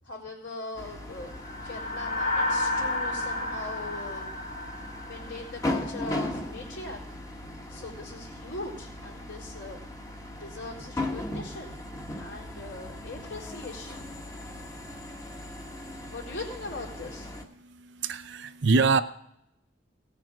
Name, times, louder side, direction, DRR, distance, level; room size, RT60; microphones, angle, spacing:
voice 1, 0.0-4.3 5.1-7.3 7.7-9.8 10.3-11.8 12.2-14.0 16.0-17.3, left 2 dB, 70° left, -3 dB, 4.0 m, -40 dB
sound 1, 0.8-17.4, left 1 dB, 20° left, 1.3 m, -38 dB
sound 2, 1.3-5.8, left 2 dB, 45° left, 2.5 m, -31 dB
voice 2, 17.6-19.0, right 4 dB, 65° right, 12 dB, 0.7 m, -25 dB
17.5 x 6.8 x 6.1 m, 0.77 s
head